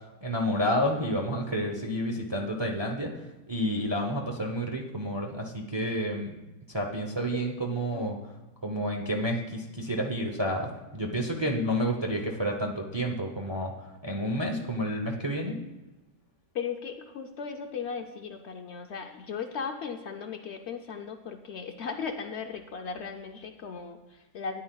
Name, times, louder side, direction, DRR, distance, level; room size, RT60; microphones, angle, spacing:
voice 1, 0.2-3.1 3.5-6.4 6.7-8.2 8.6-13.7 14.0-15.6, equal, 25° right, 0 dB, 0.6 m, -30 dB
voice 2, 16.5-24.6, left 6 dB, 60° left, 5 dB, 0.8 m, -37 dB
12.5 x 9.6 x 2.3 m, 1.1 s
omnidirectional pair, 1.4 m